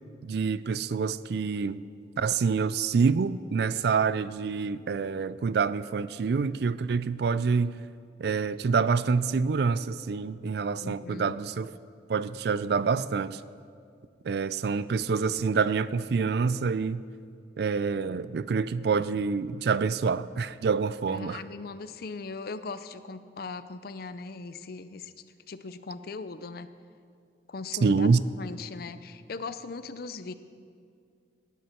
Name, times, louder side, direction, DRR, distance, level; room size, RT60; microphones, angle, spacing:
voice 1, 0.2-1.8 2.2-7.8 8.2-11.7 12.1-13.4 14.2-17.0 17.6-21.4 27.8-28.2, right 5 dB, 65° right, 16 dB, 0.4 m, -27 dB
voice 2, 10.8-11.4 21.1-25.1 25.5-26.7 27.5-28.1 28.4-30.3, left 4 dB, 60° left, 12 dB, 0.5 m, -39 dB
17.5 x 9.3 x 4.4 m, 2.3 s
head